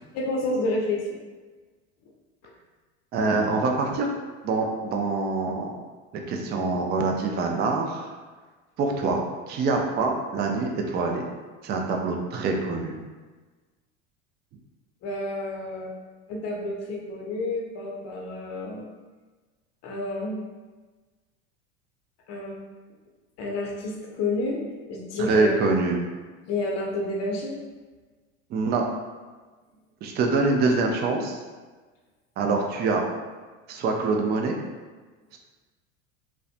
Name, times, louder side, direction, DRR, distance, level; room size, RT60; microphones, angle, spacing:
voice 1, 0.1-1.2 15.0-15.9 16.3-18.8 19.8-20.4 22.3-22.6 23.4-24.6 24.9-25.5 26.5-27.6, left 2 dB, 45° left, -1 dB, 0.6 m, -29 dB
voice 2, 3.1-4.1 4.4-5.8 6.1-8.1 8.8-9.2 9.5-11.2 11.6-13.0 25.2-26.0 28.5-28.8 30.0-31.4 32.4-33.0 33.7-34.6 35.3-35.4, right 3 dB, 30° right, 2 dB, 0.3 m, -25 dB
2.4 x 2.2 x 2.4 m, 1.3 s
hypercardioid pair, 85°, 37 cm